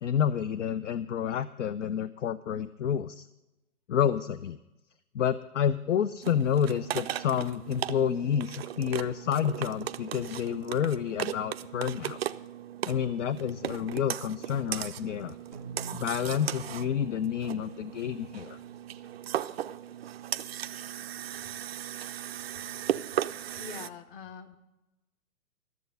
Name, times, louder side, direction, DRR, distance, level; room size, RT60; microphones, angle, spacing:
voice 1, 0.0-3.3 3.9-4.6 5.1-12.2 12.9-15.4 15.9-18.6, left 8 dB, 55° left, 16 dB, 0.6 m, -29 dB
sound 1, 6.2-23.9, right 11 dB, 45° right, 0.5 m, -37 dB
sound 2, 15.5-20.1, right 4 dB, 15° left, 0.3 m, -48 dB
voice 2, 23.6-24.6, left 6 dB, 35° left, 10 dB, 1.2 m, -44 dB
13.5 x 7.1 x 8.9 m, 0.99 s
hypercardioid pair, 150°, 44 cm